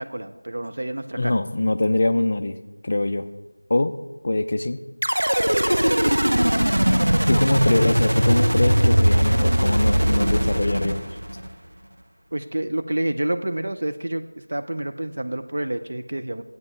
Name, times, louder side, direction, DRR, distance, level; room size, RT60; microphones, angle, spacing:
voice 1, 0.0-1.4 12.3-16.4, right 1 dB, 40° right, 7 dB, 0.4 m, -28 dB
voice 2, 1.2-2.6 2.8-3.3 3.7-3.9 4.2-4.8 7.3-11.1, left 2 dB, 30° left, 10 dB, 0.4 m, -23 dB
sound 1, 5.0-11.5, equal, 85° right, 0.6 m, -20 dB
8.0 x 7.3 x 5.7 m, 1.1 s
figure-of-eight pair, 175°, 0 cm